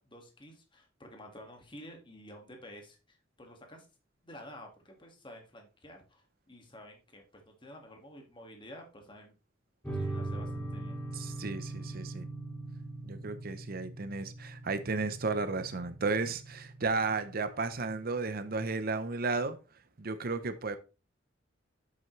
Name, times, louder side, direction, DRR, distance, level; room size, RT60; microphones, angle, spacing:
voice 1, 0.0-3.9 4.2-9.3 9.9-11.0, equal, 25° left, 1.9 m, -51 dB
sound 1, 9.8-18.8, right 2 dB, 10° left, 2.5 m, -42 dB
voice 2, 11.1-12.3 13.0-19.6 20.0-20.8, right 3 dB, 50° right, 0.7 m, -33 dB
7.8 x 7.3 x 3.2 m
head